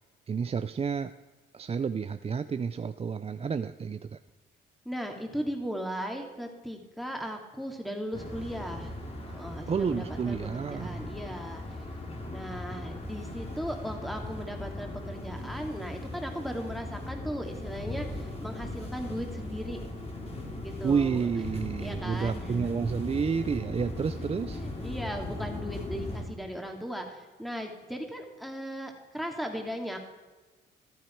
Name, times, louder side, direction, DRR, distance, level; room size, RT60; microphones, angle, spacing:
voice 1, 0.3-1.1 1.5-4.2 9.7-11.0 20.8-24.6, right 6 dB, 30° right, 10 dB, 0.5 m, -30 dB
voice 2, 4.8-8.9 9.3-11.8 12.3-19.8 20.6-21.3 21.5-22.6 24.5-30.0, equal, ahead, 3 dB, 2.6 m, -37 dB
sound 1, 8.1-26.2, left 1 dB, 30° left, 3.4 m, -38 dB
14.0 x 12.0 x 4.6 m, 1.3 s
cardioid pair, 90°, 20 cm